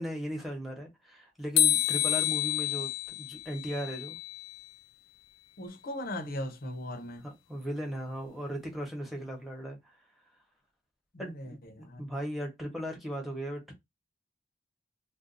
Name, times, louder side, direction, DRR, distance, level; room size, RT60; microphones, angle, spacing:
voice 1, 0.0-2.9 3.2-4.2 7.2-9.8 11.2-13.7, equal, ahead, 1.0 m, -37 dB
sound 1, 1.6-4.7, left 11 dB, 85° left, 0.3 m, -29 dB
voice 2, 5.6-7.2 11.1-12.0, left 1 dB, 55° left, 0.7 m, -38 dB
2.5 x 2.2 x 3.8 m
head